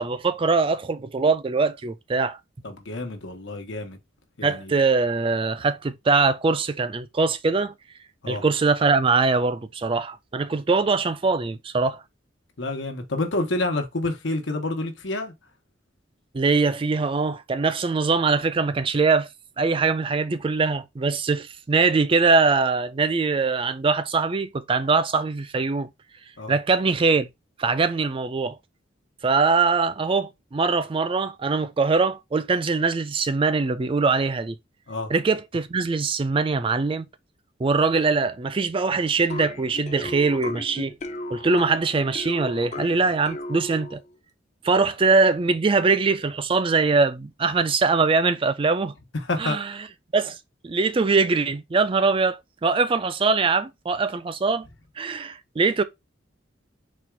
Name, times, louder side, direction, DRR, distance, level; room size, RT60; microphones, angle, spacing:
voice 1, 0.0-2.4 4.4-7.7 8.3-12.0 16.3-19.3 19.6-25.9 26.5-27.3 27.6-28.6 29.2-34.6 35.1-37.1 37.6-41.0 41.3-44.0 44.6-48.9 49.4-49.7 50.1-50.4 50.6-54.7 55.0-55.8, right 4 dB, 30° right, 0.4 m, -22 dB
voice 2, 2.6-4.0 4.4-4.8 8.2-8.4 12.6-15.3 26.4-26.5 34.9-35.1 49.1-49.6, left 2 dB, 85° left, 1.1 m, -28 dB
sound 1, 39.3-44.1, left 1 dB, 40° left, 0.6 m, -35 dB
4.3 x 2.4 x 4.4 m
head